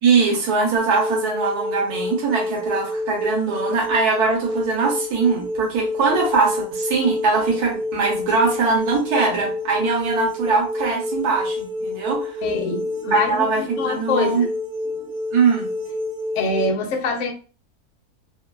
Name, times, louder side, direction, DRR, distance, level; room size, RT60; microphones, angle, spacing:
voice 1, 0.0-12.4 13.1-14.5 15.3-15.7, right 4 dB, 85° right, 0 dB, 1.4 m, -21 dB
sound 1, 0.8-16.7, left 1 dB, 65° right, 0.6 m, -28 dB
voice 2, 12.4-14.5 15.0-15.1 16.3-17.3, left 3 dB, 60° left, 4 dB, 0.8 m, -25 dB
3.2 x 2.2 x 2.2 m, 0.36 s
omnidirectional pair, 1.6 m